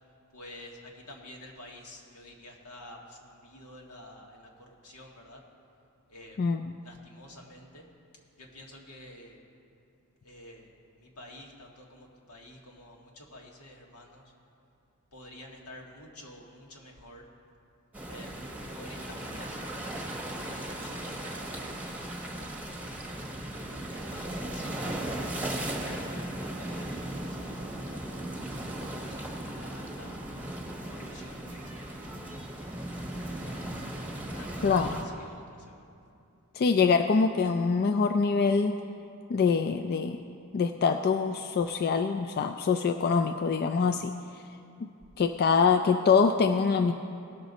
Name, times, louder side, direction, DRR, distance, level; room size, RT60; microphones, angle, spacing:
voice 1, 0.3-5.4 6.1-6.4 6.8-7.8 8.4-9.4 10.2-14.2 15.1-17.3 18.0-18.4 18.7-21.9 22.2-22.9 23.5-25.1 25.7-28.4 28.8-30.2 30.9-32.7 33.0-33.7 34.3-35.9, left 1 dB, 80° left, -1 dB, 1.7 m, -50 dB
voice 2, 6.4-6.8 34.6-34.9 36.5-38.8 39.3-40.2 40.5-44.1 45.2-46.9, left 5 dB, 45° left, 6 dB, 0.3 m, -24 dB
sound 1, 17.9-35.0, right 1 dB, 10° right, 1.1 m, -37 dB
18.5 x 6.7 x 4.0 m, 2.5 s
head